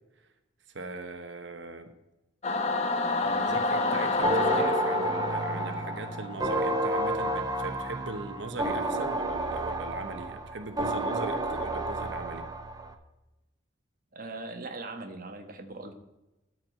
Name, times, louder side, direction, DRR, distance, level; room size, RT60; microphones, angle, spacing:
voice 1, 0.7-1.9 3.2-12.4, right 3 dB, 70° right, 7 dB, 1.1 m, -40 dB
Singing / Musical instrument, 2.4-7.1, left 3 dB, 35° left, 1.0 m, -29 dB
sound 1, 4.2-12.9, right 1 dB, 20° right, 1.0 m, -30 dB
voice 2, 14.1-15.9, right 2 dB, 50° right, 5 dB, 1.3 m, -40 dB
13.0 x 4.8 x 7.7 m, 0.98 s
head